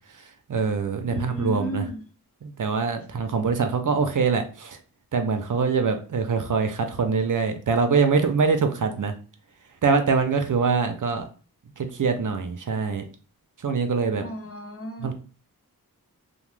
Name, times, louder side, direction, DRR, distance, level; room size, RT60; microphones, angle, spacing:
voice 1, 0.1-1.8 2.4-4.8 5.1-9.1 9.8-11.3 11.8-13.0 13.6-14.2 15.0-15.1, right 5 dB, 60° right, 7 dB, 0.5 m, -24 dB
voice 2, 1.1-2.0 14.2-15.1, left 1 dB, 40° left, 2 dB, 0.7 m, -34 dB
2.8 x 2.1 x 3.1 m, 0.37 s
wide cardioid pair, 70°, 37 cm